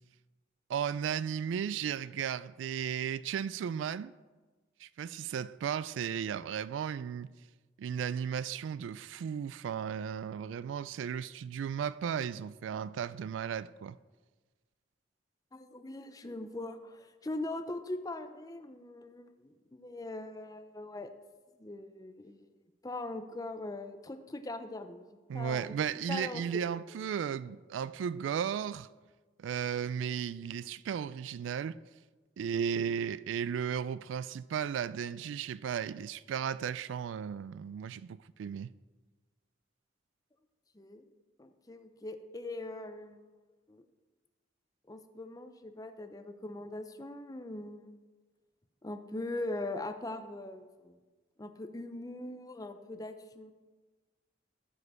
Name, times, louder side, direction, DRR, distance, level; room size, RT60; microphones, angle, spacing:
voice 1, 0.7-4.1 4.8-7.3 7.8-14.0 25.3-28.9 29.4-31.8 32.4-38.7, right 8 dB, 90° right, 0.3 m, -35 dB
voice 2, 15.5-21.1 21.6-22.4 22.8-25.1 25.3-26.6 40.7-41.1 41.4-43.3 43.7-43.8 44.9-48.0 48.8-51.0 51.4-53.5, left 2 dB, 20° left, 0.5 m, -41 dB
14.0 x 5.1 x 4.8 m
head